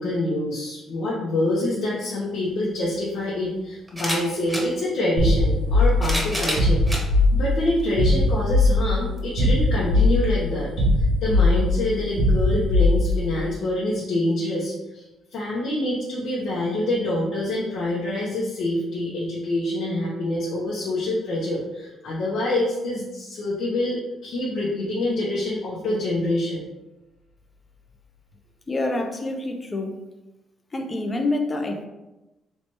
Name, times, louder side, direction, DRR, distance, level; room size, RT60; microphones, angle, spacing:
voice 1, 0.0-6.8 7.3-10.7 11.0-15.0 15.3-26.7, left 1 dB, 70° left, -6 dB, 0.8 m, -26 dB
sound 1, 2.5-2.6 3.9-4.7 5.7-7.1 7.8-7.9 9.2-9.3, equal, 5° right, 1.0 m, -28 dB
sound 2, 5.2-13.4, left 2 dB, 85° right, 0.7 m, -20 dB
voice 2, 28.7-30.0 30.7-31.9, left 2 dB, 25° left, 3 dB, 0.6 m, -27 dB
3.2 x 3.2 x 2.9 m, 1.0 s
cardioid pair, 90°, 0 cm